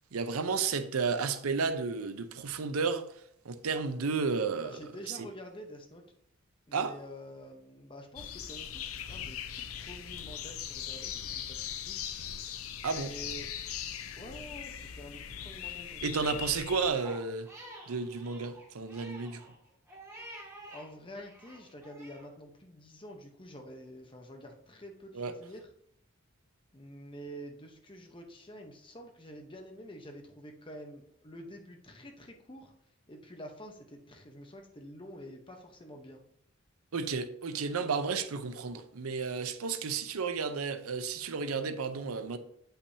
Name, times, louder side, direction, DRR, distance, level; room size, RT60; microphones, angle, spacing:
voice 1, 0.1-3.0 3.5-4.8 6.7-6.9 12.8-13.1 16.0-17.5 17.9-19.4 25.1-25.3 36.9-42.4, right 5 dB, 90° right, 0.6 m, -32 dB
voice 2, 4.6-6.1 6.7-12.0 12.9-13.5 14.2-16.3 20.7-25.7 26.7-32.7 33.1-36.2, equal, 25° left, 0.9 m, -48 dB
sound 1, 8.2-16.9, left 9 dB, 75° left, 0.5 m, -40 dB
Crying sobbing, 17.0-20.9 21.2-22.3, right 1 dB, 15° right, 2.1 m, -49 dB
8.3 x 5.7 x 2.8 m
head